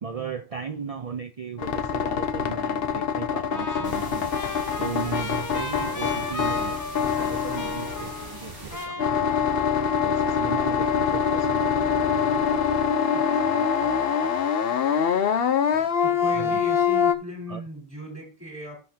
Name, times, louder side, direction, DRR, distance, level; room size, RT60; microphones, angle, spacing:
voice 1, 0.0-4.3 4.8-9.1 10.0-11.9 15.7-15.9 16.3-16.6 17.5-17.6, right 6 dB, 45° right, 0.5 m, -36 dB
sound 1, 1.6-8.5 9.0-17.1, left 7 dB, 65° left, 0.9 m, -24 dB
Trumpet, 3.5-8.5 8.7-9.7, left 1 dB, 20° left, 0.7 m, -36 dB
sound 2, 3.8-8.8, right 1 dB, 80° right, 4.2 m, -41 dB
voice 2, 10.2-10.5 13.1-13.9 14.2-14.3 16.0-18.8, equal, 15° right, 4.2 m, -38 dB
11.0 x 6.9 x 2.8 m
omnidirectional pair, 1.1 m